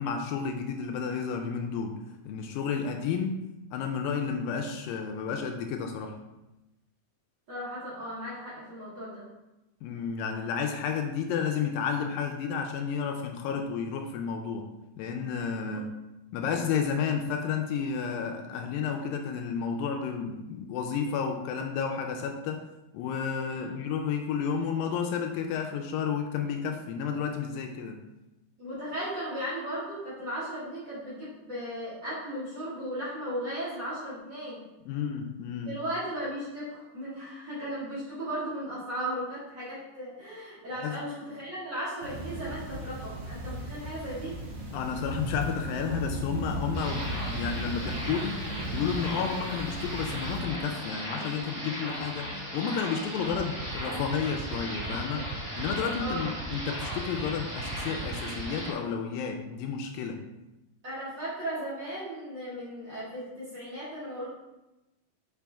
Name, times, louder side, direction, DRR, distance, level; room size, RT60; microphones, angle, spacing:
voice 1, 0.0-3.5 3.7-6.2 9.8-14.7 15.0-15.9 16.3-22.7 22.9-28.0 34.9-35.7 40.8-41.0 44.7-55.2 55.6-60.2, left 6 dB, 80° left, 4 dB, 2.2 m, -31 dB
voice 2, 7.5-9.2 16.5-16.7 23.5-23.7 28.6-34.6 35.7-44.4 56.0-56.3 60.8-64.3, right 1 dB, 40° right, -10 dB, 2.0 m, -36 dB
sound 1, 42.0-50.4, right 1 dB, 55° right, 1.2 m, -36 dB
sound 2, 46.7-58.7, equal, 20° right, 1.2 m, -37 dB
sound 3, 53.3-58.4, right 11 dB, 80° right, 1.9 m, -39 dB
6.2 x 5.3 x 3.4 m, 0.97 s
omnidirectional pair, 4.2 m